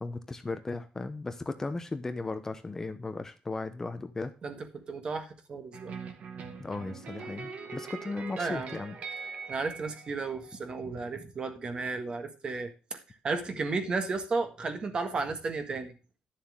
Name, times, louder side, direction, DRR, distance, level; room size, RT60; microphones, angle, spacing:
voice 1, 0.0-4.3 6.6-9.0, left 3 dB, 20° left, 9 dB, 0.8 m, -36 dB
voice 2, 4.4-5.9 6.4-6.5 8.4-8.8 9.5-15.9, right 4 dB, 35° right, 8 dB, 1.7 m, -34 dB
sound 1, 5.7-10.8, right 5 dB, 60° right, 1.7 m, -42 dB
11.0 x 7.2 x 3.6 m, 0.33 s
cardioid pair, 145°, 3 cm